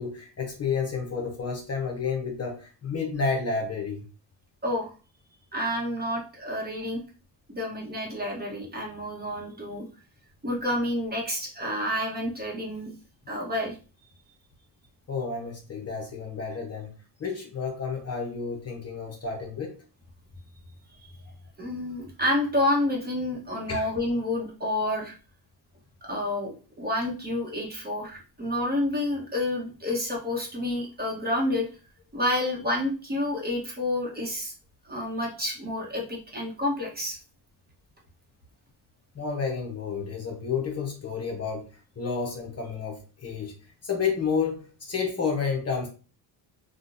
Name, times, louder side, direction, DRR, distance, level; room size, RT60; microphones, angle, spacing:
voice 1, 0.0-4.0 15.1-19.8 23.7-23.9 39.1-45.9, left 5 dB, 35° left, 1 dB, 0.8 m, -31 dB
voice 2, 4.6-4.9 5.5-7.0 7.5-9.9 10.4-12.9 13.3-13.8 21.0-21.1 21.6-25.1 26.0-31.7 32.1-34.5 34.8-37.2, left 1 dB, 20° right, -1 dB, 1.0 m, -29 dB
3.7 x 2.3 x 2.5 m, 0.35 s
cardioid pair, 105°, 45 cm